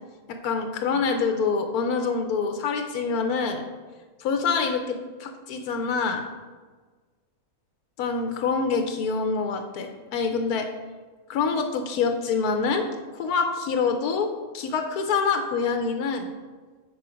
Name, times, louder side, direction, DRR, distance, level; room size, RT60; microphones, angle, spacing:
voice 1, 0.3-3.6 4.2-6.3 8.0-10.7 11.3-12.8 13.1-14.3 14.5-16.3, left 5 dB, 85° left, 6 dB, 1.2 m, -26 dB
7.0 x 4.9 x 5.1 m, 1.4 s
omnidirectional pair, 1.6 m